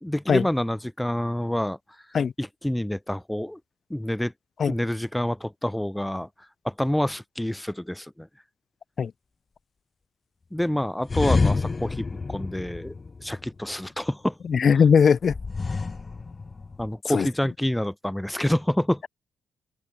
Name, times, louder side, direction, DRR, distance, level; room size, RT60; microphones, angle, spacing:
voice 1, 0.0-1.8 2.4-3.6 3.9-4.3 4.7-6.3 6.6-8.3 10.5-12.9 13.2-14.3 16.8-19.1, left 1 dB, 5° left, 2.1 m, -27 dB
sound 1, 11.0-13.7 15.2-17.0, left 4 dB, 30° left, 6.3 m, -28 dB
voice 2, 14.5-15.3 17.1-17.3, left 6 dB, 50° left, 2.5 m, -19 dB
open air
cardioid pair, 90°, 0 cm